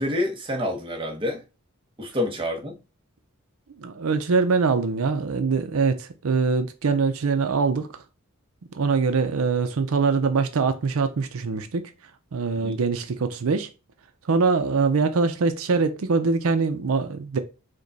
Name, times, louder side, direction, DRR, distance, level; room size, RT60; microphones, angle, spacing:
voice 1, 0.0-1.4 2.0-2.8 12.6-12.8, left 1 dB, 25° right, 0.9 m, -28 dB
voice 2, 3.8-7.9 8.7-11.9 12.3-13.7 14.3-17.4, right 4 dB, 80° right, 0.5 m, -23 dB
5.1 x 2.2 x 4.0 m
head